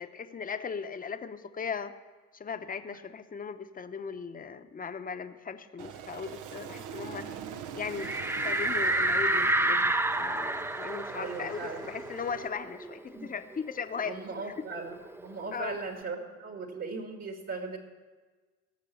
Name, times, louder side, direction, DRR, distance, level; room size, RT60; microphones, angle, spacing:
voice 1, 0.0-1.9 2.3-7.3 7.7-8.1 8.4-14.2 14.4-14.5 15.5-15.8, left 6 dB, 30° left, 10 dB, 0.8 m, -38 dB
Aircraft, 5.8-12.5, right 8 dB, 90° right, 0.8 m, -44 dB
sound 1, 8.0-13.2 13.5-13.6 14.0-15.6, right 1 dB, 10° right, 0.4 m, -29 dB
voice 2, 11.1-11.9 13.2-13.3 14.1-17.8, right 3 dB, 55° right, 3 dB, 2.1 m, -38 dB
17.5 x 6.8 x 6.9 m, 1.4 s
cardioid pair, 90°, 30 cm